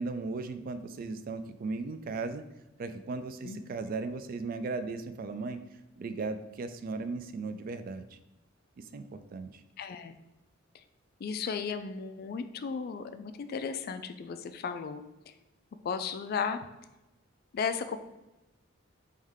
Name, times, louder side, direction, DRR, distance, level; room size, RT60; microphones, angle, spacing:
voice 1, 0.0-2.4 2.8-5.6 6.0-8.2 8.8-9.6, right 3 dB, 45° right, 11 dB, 0.3 m, -37 dB
voice 2, 9.8-10.1 10.7-10.8 11.2-15.3 15.8-16.6 17.5-18.0, left 6 dB, 50° left, 10 dB, 0.3 m, -35 dB
3.6 x 3.1 x 3.4 m, 1.0 s
head